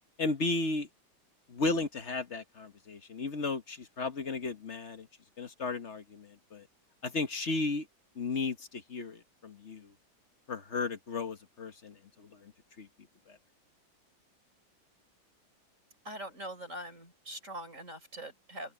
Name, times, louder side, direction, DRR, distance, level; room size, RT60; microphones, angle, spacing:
voice 1, 0.2-0.9 1.5-5.1 5.4-6.6 7.0-7.9 8.2-9.9 10.5-12.5 12.8-12.9 13.3-13.4, left 3 dB, 40° left, 1.3 m, -34 dB
voice 2, 16.0-18.7, right 1 dB, 40° right, 5.4 m, -43 dB
omnidirectional pair, 2.1 m